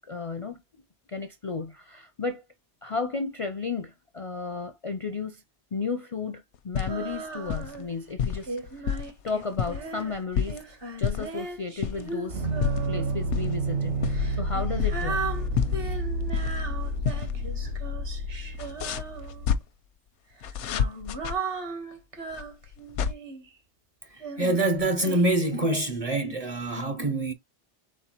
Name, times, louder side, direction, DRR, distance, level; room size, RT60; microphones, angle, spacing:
voice 1, 0.1-0.6 1.1-2.4 2.8-5.4 5.7-8.9 9.2-10.6 11.0-12.5 12.9-15.3 15.7-15.8, left 4 dB, 45° left, 0.4 m, -33 dB
sound 1, 6.5-7.2 7.5-7.8 8.2-9.1 9.4-10.6 11.0-11.4 11.8-12.1 12.4-12.9 13.3-13.5 13.9-15.3 15.6-16.7 17.0-17.3 17.6-17.7 18.6-19.6 20.4-21.4 22.3-23.1, left 8 dB, 85° left, 0.9 m, -29 dB
Female singing, 6.9-7.9 8.5-13.3 14.1-19.6 20.4-23.5 24.2-25.3, right 3 dB, 55° right, 1.4 m, -37 dB
sound 2, 12.3-19.5, right 1 dB, 80° right, 1.9 m, -30 dB
voice 2, 24.4-27.3, right 2 dB, 40° right, 0.6 m, -25 dB
4.3 x 3.9 x 2.9 m
omnidirectional pair, 1.2 m